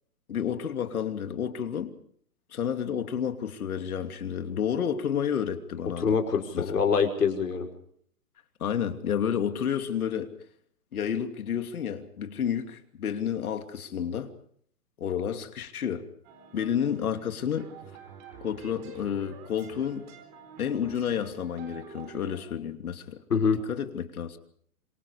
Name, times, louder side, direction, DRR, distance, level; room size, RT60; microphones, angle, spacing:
voice 1, 0.3-1.9 2.5-6.2 6.5-6.7 8.6-10.3 10.9-14.3 15.0-16.1 16.5-17.7 18.4-20.1 20.6-23.2 23.7-24.4, left 8 dB, 65° left, 7 dB, 2.9 m, -30 dB
voice 2, 6.0-7.7 23.3-23.6, left 6 dB, 85° left, 4 dB, 5.5 m, -25 dB
sound 1, 16.2-22.4, right 7 dB, 30° right, 4.4 m, -48 dB
27.0 x 24.0 x 5.0 m, 0.62 s
hypercardioid pair, 155°, 47 cm